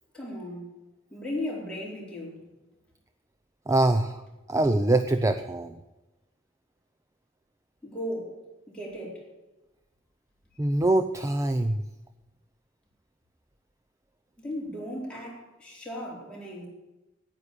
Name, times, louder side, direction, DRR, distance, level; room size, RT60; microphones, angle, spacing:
voice 1, 0.1-0.7 1.1-2.4 7.8-8.4 8.7-9.3 14.4-16.7, left 1 dB, 5° left, 4.2 m, -36 dB
voice 2, 3.7-4.2 4.5-5.8 10.6-11.8, right 2 dB, 15° right, 0.5 m, -24 dB
9.9 x 9.5 x 8.4 m
head